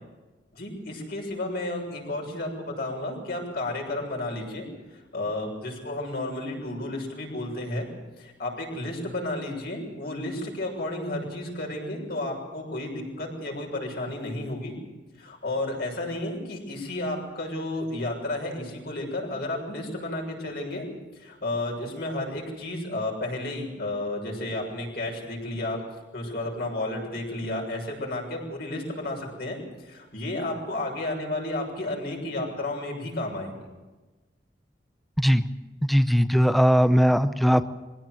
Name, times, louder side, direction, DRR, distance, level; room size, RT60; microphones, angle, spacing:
voice 1, 0.5-7.9 8.2-14.7 15.2-20.9 21.2-25.8 26.1-33.5, left 1 dB, 60° left, 0 dB, 6.8 m, -32 dB
voice 2, 35.8-37.7, equal, ahead, 11 dB, 0.7 m, -19 dB
23.5 x 17.0 x 7.8 m, 1.2 s
head